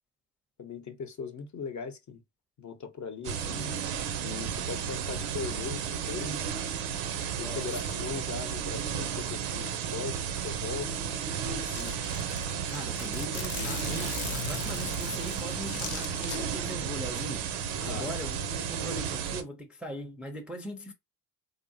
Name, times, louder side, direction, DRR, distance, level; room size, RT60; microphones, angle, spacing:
voice 1, 0.6-2.2 2.6-3.8 4.2-6.4 7.4-10.9 17.9-18.1, left 5 dB, 40° left, 0.8 m, -39 dB
sound 1, 3.2-19.4, right 8 dB, 85° right, 0.7 m, -33 dB
voice 2, 7.3-7.7 11.6-12.0 12.7-20.9, equal, ahead, 0.5 m, -40 dB
Zipper (clothing), 11.0-11.1 11.3-11.4 11.8-16.4, left 7 dB, 80° left, 0.9 m, -39 dB
3.5 x 2.0 x 2.6 m
supercardioid pair, 70°, 46 cm